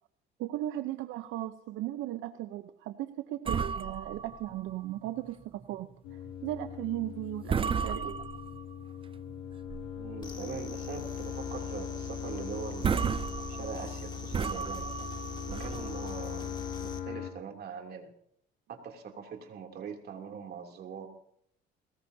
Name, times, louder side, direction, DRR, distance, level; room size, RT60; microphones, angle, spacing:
voice 1, 0.4-8.2, right 14 dB, 75° right, 10 dB, 0.9 m, -37 dB
sound 1, 3.5-5.3 5.6-5.8 6.3-6.5 7.0-7.2 7.5-8.8 9.3-10.2 10.5-10.6 11.1-11.3 11.6-11.7 12.3-12.4 12.7-16.4, right 6 dB, 25° right, 0.6 m, -34 dB
sound 2, 6.0-17.3, left 9 dB, 90° left, 2.6 m, -41 dB
voice 2, 10.0-13.0 13.5-14.9 15.5-18.1 18.7-21.1, right 6 dB, 50° right, 3 dB, 3.0 m, -42 dB
sound 3, 10.2-17.0, left 3 dB, 20° left, 2.2 m, -43 dB
22.0 x 20.0 x 2.8 m, 0.68 s
cardioid pair, 110°, 20 cm